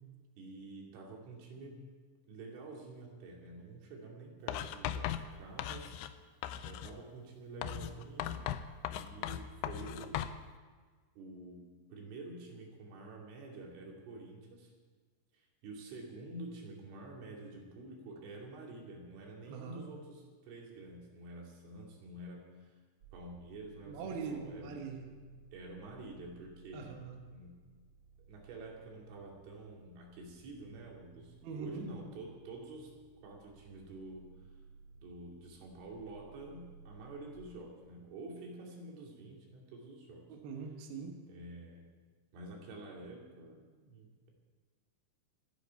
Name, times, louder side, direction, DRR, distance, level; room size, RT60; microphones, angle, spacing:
voice 1, 0.4-1.8 2.3-6.3 6.6-8.5 9.0-10.2 11.2-14.7 15.3-22.8 23.1-24.8 25.5-26.9 27.3-27.6 28.3-32.9 33.2-34.5 35.0-40.3 41.3-41.9 42.3-44.3, right 2 dB, 85° right, -1 dB, 5.1 m, -48 dB
Writing, 4.5-6.2 6.4-7.0 7.6-10.4, left 11 dB, 85° left, 2.3 m, -38 dB
voice 2, 19.5-19.8 23.8-25.1 26.7-27.2 31.4-31.9 40.3-41.2, right 5 dB, 65° right, 2 dB, 3.0 m, -42 dB
sound 1, 23.0-37.4, right 4 dB, 40° right, 2.2 m, -59 dB
27.5 x 10.0 x 4.6 m, 1.5 s
omnidirectional pair, 5.5 m